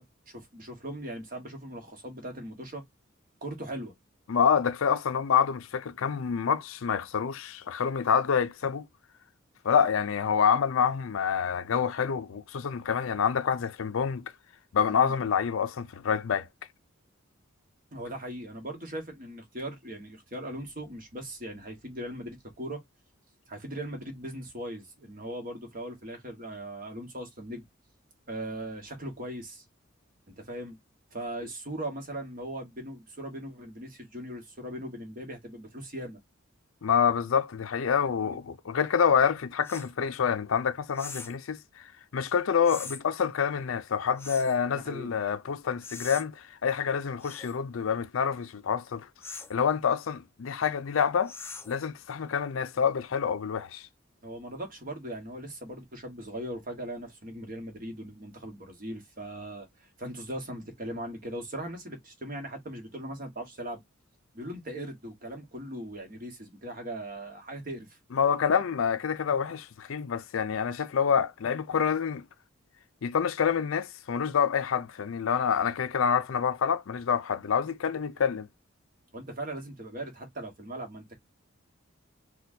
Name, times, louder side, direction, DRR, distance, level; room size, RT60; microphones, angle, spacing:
voice 1, 0.0-2.8 3.4-3.9 14.9-15.1 17.9-22.8 23.5-27.6 28.3-29.6 30.4-30.8 31.1-36.2 38.1-38.4 44.7-45.1 54.2-63.8 64.3-68.0 79.1-81.1, right 1 dB, 40° right, 1.3 m, -39 dB
voice 2, 4.3-8.9 9.6-14.3 14.7-16.5 36.8-41.6 42.1-49.1 49.5-51.3 51.7-53.9 68.1-72.2 73.0-78.5, left 7 dB, 75° left, 0.5 m, -27 dB
sound 1, 39.6-39.9 40.9-41.4 42.6-43.0 44.2-44.6 45.8-46.2 47.2-47.6 49.2-49.5 51.3-51.8, left 4 dB, 10° left, 0.4 m, -42 dB
4.2 x 2.3 x 2.6 m
head